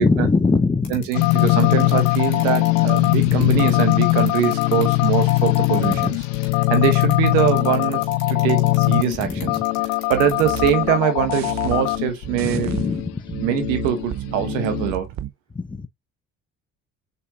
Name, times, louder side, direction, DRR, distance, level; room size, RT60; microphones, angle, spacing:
voice 1, 0.0-1.0 3.2-3.6 5.8-6.2 9.2-9.6 12.4-13.3 15.5-15.9, left 4 dB, 10° left, 0.6 m, -23 dB
sound 1, 0.8-10.7, left 8 dB, 60° left, 2.6 m, -39 dB
voice 2, 0.9-6.2 6.5-8.0 8.3-9.6 10.1-12.7 13.4-15.1, right 10 dB, 80° right, 1.1 m, -23 dB
sound 2, 1.1-14.9, left 21 dB, 80° left, 0.5 m, -21 dB
sound 3, 10.1-15.3, right 11 dB, 45° right, 0.6 m, -32 dB
5.3 x 4.3 x 2.4 m
hypercardioid pair, 60°, 38 cm